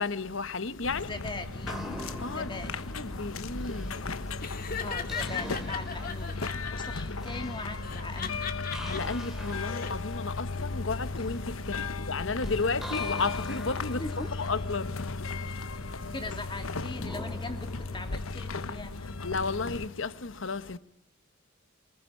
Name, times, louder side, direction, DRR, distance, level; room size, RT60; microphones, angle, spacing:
voice 1, 0.0-1.1 2.0-2.5 2.9-4.8 8.8-16.1 19.2-20.8, left 4 dB, 65° left, 1.2 m, -34 dB
sound 1, 0.8-19.9, left 3 dB, 85° left, 1.1 m, -36 dB
voice 2, 1.1-1.8 2.2-2.7 4.8-8.5 14.0-14.3 15.5-15.6 16.1-19.1, left 2 dB, 25° left, 2.7 m, -40 dB
sound 2, 1.4-19.3, equal, ahead, 3.0 m, -45 dB
Laughter, 4.4-7.0 7.8-9.0 9.5-9.9, left 6 dB, 45° left, 2.4 m, -37 dB
24.0 x 20.5 x 9.7 m
head